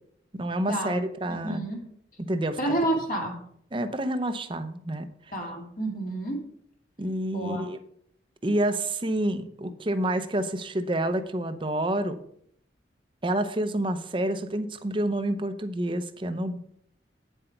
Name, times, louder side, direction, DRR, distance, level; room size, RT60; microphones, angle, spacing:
voice 1, 0.3-1.6 2.2-2.7 3.7-5.1 7.0-7.8 8.4-12.2 13.2-16.6, right 1 dB, 30° right, 9 dB, 0.7 m, -28 dB
voice 2, 1.3-1.8 2.6-3.4 5.3-6.4 7.3-7.6, right 1 dB, 50° left, 0 dB, 2.2 m, -29 dB
9.1 x 7.8 x 4.5 m, 0.67 s
head